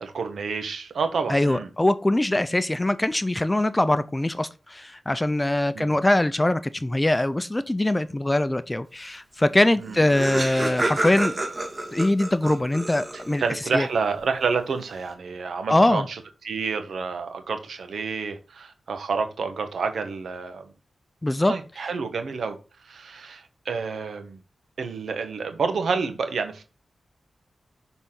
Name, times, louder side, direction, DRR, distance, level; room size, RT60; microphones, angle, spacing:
voice 1, 0.0-1.7 5.7-6.0 9.8-10.0 13.1-20.7 21.5-22.6 22.8-24.4 24.8-26.6, right 5 dB, 80° right, 1.0 m, -29 dB
voice 2, 1.3-11.3 11.9-13.4 13.7-13.9 15.7-16.1 21.2-21.5, left 1 dB, 20° left, 0.5 m, -22 dB
Laughter, 9.5-9.6 9.8-13.5, right 2 dB, 35° right, 2.4 m, -29 dB
6.1 x 4.0 x 3.8 m
cardioid pair, 60°, 0 cm